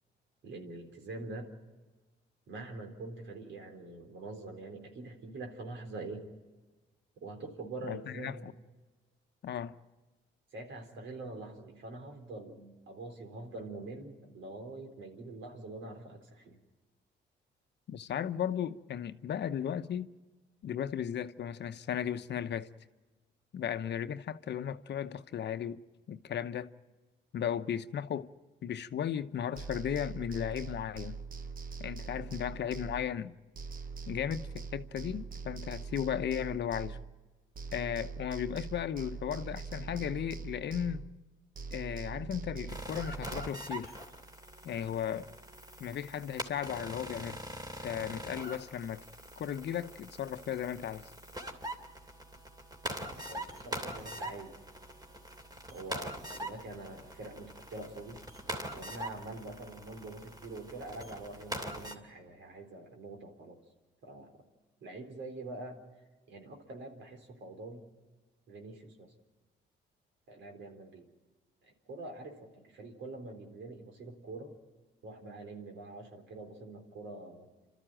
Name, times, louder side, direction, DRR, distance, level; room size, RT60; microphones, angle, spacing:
voice 1, 0.4-1.5 2.5-6.3 7.2-8.5 10.5-16.6 53.0-54.6 55.7-58.2 58.7-63.6 64.0-64.4 64.8-65.8 66.3-67.8 68.5-69.1 70.3-71.1 71.9-74.6 75.0-77.5, right 2 dB, 70° right, 4.0 m, -45 dB
voice 2, 7.9-8.5 9.4-9.7 17.9-20.1 20.6-22.7 23.5-25.8 26.1-26.7 27.3-28.3 28.6-31.2 31.8-33.4 34.1-37.0 37.7-41.1 41.7-43.9 44.6-45.3 45.8-47.4 47.8-49.0 49.4-51.1, left 9 dB, 60° left, 0.9 m, -35 dB
sound 1, 29.5-33.3 33.6-37.3 37.6-41.3 41.6-43.5, right 5 dB, 45° right, 1.2 m, -43 dB
sound 2, 42.7-61.9, right 1 dB, 20° right, 2.8 m, -43 dB
28.5 x 13.5 x 9.0 m
cardioid pair, 90°, 20 cm